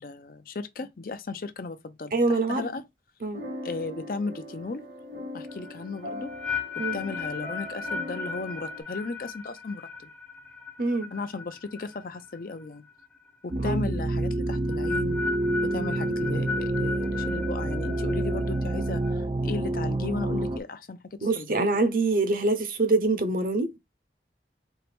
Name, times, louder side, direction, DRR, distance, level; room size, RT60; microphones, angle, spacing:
voice 1, 0.0-2.8 3.6-4.8 5.3-6.3 6.8-10.1 11.1-12.8 13.4-15.2 15.6-21.7, left 3 dB, 50° left, 0.5 m, -35 dB
voice 2, 2.1-2.6 3.2-3.4 6.8-7.0 10.8-11.1 13.6-13.8 21.2-23.8, right 3 dB, 50° right, 0.8 m, -25 dB
sound 1, 3.3-8.8, left 1 dB, 85° right, 2.4 m, -40 dB
sound 2, 5.5-12.6 12.9-13.3 14.5-19.1, left 5 dB, 5° left, 0.7 m, -36 dB
sound 3, 13.5-20.6, right 2 dB, 30° right, 0.3 m, -28 dB
4.4 x 2.5 x 3.4 m
head